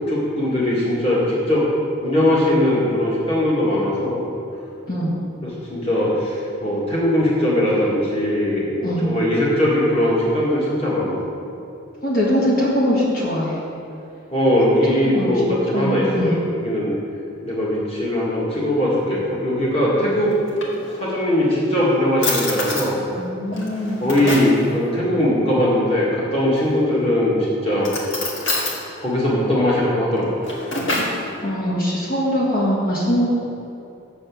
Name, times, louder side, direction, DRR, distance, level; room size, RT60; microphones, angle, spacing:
voice 1, 0.1-1.7 2.0-4.2 5.4-11.2 14.3-16.9 17.4-20.4 21.0-23.0 24.0-27.4 27.6-27.9 29.0-30.4, left 1 dB, 30° left, -6 dB, 1.9 m, -20 dB
voice 2, 4.9-5.2 8.8-9.1 12.0-13.6 14.8-15.4 15.7-16.4 23.2-24.0 30.9-31.1 31.4-33.4, equal, 45° left, -6 dB, 1.8 m, -22 dB
Drawer open or close, 20.3-21.3 21.8-21.9 22.2-22.9 23.5-24.6 26.5-27.0 27.8-28.8 30.2-31.2, left 2 dB, 70° left, 1.7 m, -27 dB
7.2 x 7.0 x 7.0 m, 2.8 s
head